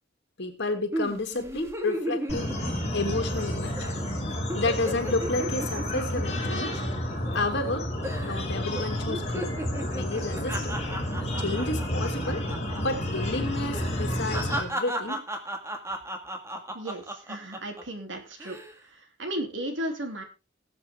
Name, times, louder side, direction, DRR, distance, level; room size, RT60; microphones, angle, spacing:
voice 1, 0.4-2.6 2.9-3.9 4.5-6.8 7.3-7.9 8.2-9.5 9.9-10.8 11.4-12.4 12.8-15.2, left 2 dB, 65° left, 5 dB, 2.5 m, -31 dB
sound 1, 0.9-3.5 3.8-4.0 4.3-7.7 8.0-8.5 8.8-12.8 13.1-13.3 13.7-17.8 18.3-18.7, equal, 15° right, 1.8 m, -35 dB
sound 2, 2.3-14.6, left 1 dB, 35° left, 4.2 m, -31 dB
voice 2, 16.7-18.6 18.9-20.2, right 1 dB, 70° right, 5 dB, 3.1 m, -35 dB
19.0 x 7.8 x 3.6 m, 0.30 s
head